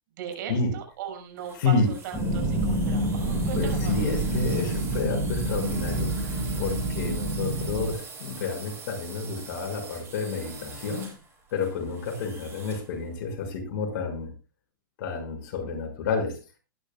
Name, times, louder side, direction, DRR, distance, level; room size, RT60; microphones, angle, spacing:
voice 1, 0.2-4.0, right 8 dB, 60° right, 5 dB, 6.1 m, -38 dB
sound 1, 1.4-12.9, right 4 dB, 20° right, 7.9 m, -43 dB
sound 2, 2.1-7.9, right 1 dB, 5° left, 7.3 m, -27 dB
voice 2, 3.6-11.1 11.5-14.3 15.0-16.4, left 4 dB, 55° left, 3 dB, 5.9 m, -30 dB
20.5 x 11.5 x 2.3 m, 0.28 s
hypercardioid pair, 140°, 12 cm